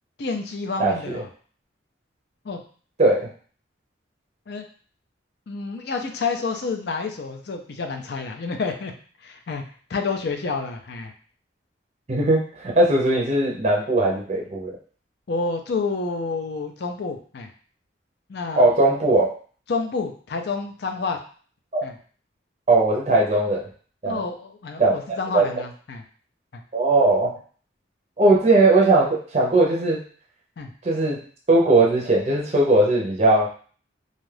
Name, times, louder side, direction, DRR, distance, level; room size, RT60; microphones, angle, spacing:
voice 1, 0.2-1.3 2.4-2.6 4.5-4.7 5.5-8.9 9.2-9.6 9.9-11.1 15.3-17.5 18.3-18.7 19.7-21.2 21.8-21.9 24.1-26.0 26.5-26.6 30.6-30.7, left 4 dB, 55° left, 5 dB, 0.4 m, -29 dB
voice 2, 12.1-14.7 18.6-19.3 21.7-21.9 22.7-23.6 24.0-24.2 24.8-24.9 25.3-25.5 26.7-27.3 28.2-30.0 30.8-31.2 31.5-33.5, right 2 dB, 35° right, -2 dB, 0.5 m, -19 dB
2.6 x 2.3 x 3.2 m, 0.43 s
head